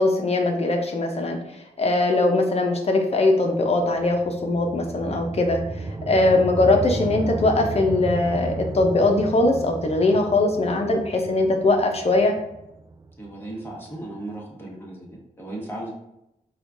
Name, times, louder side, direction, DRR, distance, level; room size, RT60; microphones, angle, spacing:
voice 1, 0.0-1.4 1.8-5.6 6.1-12.3, left 2 dB, 50° left, 3 dB, 0.6 m, -21 dB
sound 1, 3.5-13.8, right 3 dB, 25° right, 0.3 m, -34 dB
voice 2, 13.2-15.9, right 1 dB, 15° left, -3 dB, 1.3 m, -36 dB
4.2 x 2.3 x 2.5 m, 0.84 s
cardioid pair, 60°, 14 cm